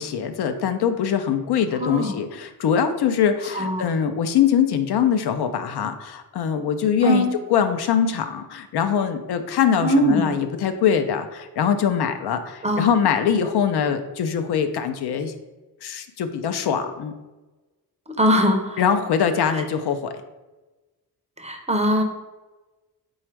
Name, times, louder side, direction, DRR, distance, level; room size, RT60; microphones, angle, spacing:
voice 1, 0.0-15.3 15.8-17.1 18.8-20.1, left 8 dB, 80° left, 8 dB, 0.5 m, -23 dB
voice 2, 1.8-2.1 3.5-3.9 7.0-7.3 9.8-10.3 12.6-12.8 18.1-18.8 19.5-19.6 21.4-22.0, equal, 15° right, 3 dB, 0.5 m, -21 dB
4.2 x 2.3 x 4.5 m, 1.2 s
wide cardioid pair, 115°, 39 cm